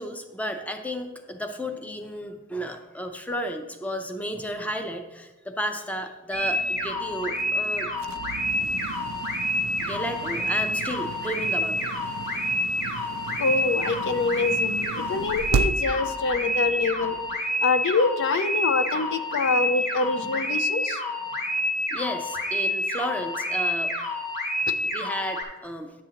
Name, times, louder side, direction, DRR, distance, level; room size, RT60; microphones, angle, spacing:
voice 1, 0.0-7.9 9.8-11.9 12.5-12.7 20.1-20.3 21.9-24.1 24.8-25.9, equal, 5° left, 0.5 m, -33 dB
sound 1, 6.3-25.4, left 1 dB, 35° left, 1.8 m, -28 dB
sound 2, 6.3-17.4, right 6 dB, 70° right, 0.3 m, -35 dB
voice 2, 13.4-17.2 17.6-21.0, left 3 dB, 60° left, 0.4 m, -25 dB
10.5 x 7.6 x 2.8 m
head